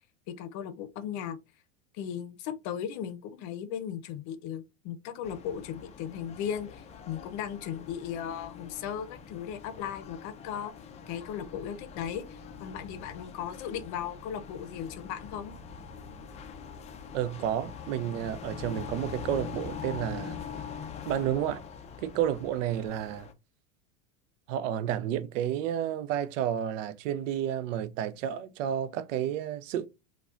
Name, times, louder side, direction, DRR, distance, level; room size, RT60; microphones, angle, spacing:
voice 1, 0.3-1.4 1.9-10.7 11.1-15.5, left 9 dB, 45° left, 0.7 m, -37 dB
sound 1, 5.2-23.3, left 7 dB, 20° left, 0.3 m, -44 dB
sound 2, 11.2-17.2, right 1 dB, 10° right, 0.8 m, -54 dB
voice 2, 17.1-20.4 21.1-21.6 22.0-23.3 24.5-29.9, right 10 dB, 75° right, 0.6 m, -31 dB
4.7 x 2.3 x 2.4 m
supercardioid pair, 120°, 38 cm